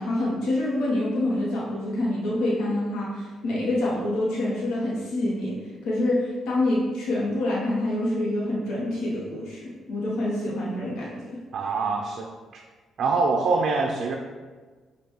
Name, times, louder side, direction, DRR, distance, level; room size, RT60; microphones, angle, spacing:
voice 1, 0.0-5.5 5.8-11.4, left 1 dB, 75° left, -5 dB, 0.9 m, -26 dB
voice 2, 11.5-12.6 13.0-14.2, right 4 dB, 65° right, 1 dB, 0.4 m, -25 dB
5.2 x 2.2 x 3.0 m, 1.4 s
supercardioid pair, 55°, 0 cm